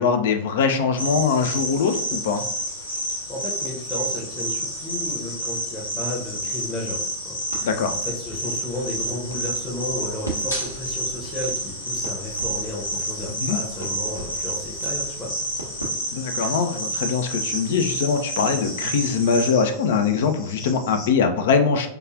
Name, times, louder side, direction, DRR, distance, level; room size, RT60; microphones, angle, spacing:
voice 1, 0.0-2.4 7.6-8.0 13.4-13.6 16.1-21.9, left 5 dB, 55° left, 7 dB, 0.4 m, -22 dB
sound 1, 1.0-19.5, right 1 dB, 80° left, 1.0 m, -30 dB
Cricket, 1.1-21.1, left 2 dB, 40° left, 1.0 m, -43 dB
voice 2, 3.3-15.3, left 1 dB, 20° left, -4 dB, 0.8 m, -33 dB
Crackle, 7.5-16.7, right 1 dB, 90° right, 0.7 m, -40 dB
4.7 x 2.4 x 2.4 m, 0.67 s
figure-of-eight pair, 90°, 0 cm